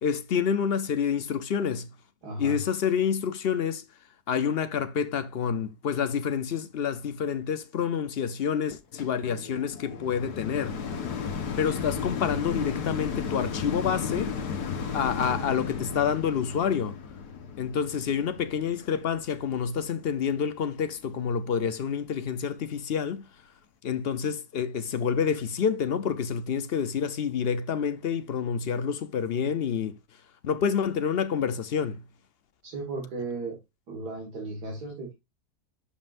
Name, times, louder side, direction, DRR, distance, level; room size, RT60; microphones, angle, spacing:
voice 1, 0.0-1.9 2.4-3.8 4.3-10.8 11.6-14.3 14.9-17.0 17.6-23.3 23.8-30.0 30.4-32.0, left 7 dB, 55° left, 0.7 m, -28 dB
voice 2, 2.2-2.6 32.6-33.6 33.9-35.1, right 2 dB, 85° right, 2.3 m, -35 dB
sound 1, 9.0-20.3 20.9-21.0, left 6 dB, 80° left, 1.6 m, -34 dB
11.5 x 5.5 x 2.5 m
omnidirectional pair, 1.7 m